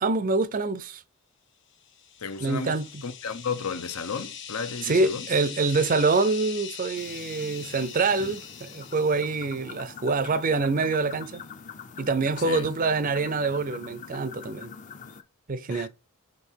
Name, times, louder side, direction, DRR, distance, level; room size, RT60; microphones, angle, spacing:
voice 1, 0.0-1.0 2.4-3.0 4.8-11.4 12.0-14.7 15.5-15.9, right 3 dB, 40° right, 0.5 m, -26 dB
sound 1, 1.8-9.6, left 8 dB, 55° left, 1.2 m, -42 dB
voice 2, 2.2-5.3 7.8-7.9 8.2-8.3 12.4-12.7 15.7-15.9, left 5 dB, 80° left, 0.9 m, -34 dB
sound 2, 6.9-15.2, left 6 dB, 35° left, 0.6 m, -44 dB
5.4 x 4.2 x 4.5 m
head